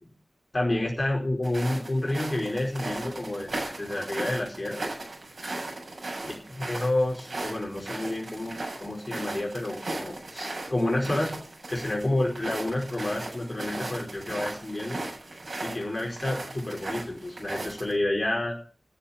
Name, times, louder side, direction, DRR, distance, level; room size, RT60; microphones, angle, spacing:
voice 1, 0.5-4.9 6.7-11.3 11.7-15.0 15.6-18.5, left 1 dB, 35° left, -1 dB, 4.7 m, -29 dB
sound 1, 1.4-17.9, right 2 dB, 65° right, 7.4 m, -37 dB
12.5 x 7.3 x 8.7 m, 0.42 s
wide cardioid pair, 55°, 0 cm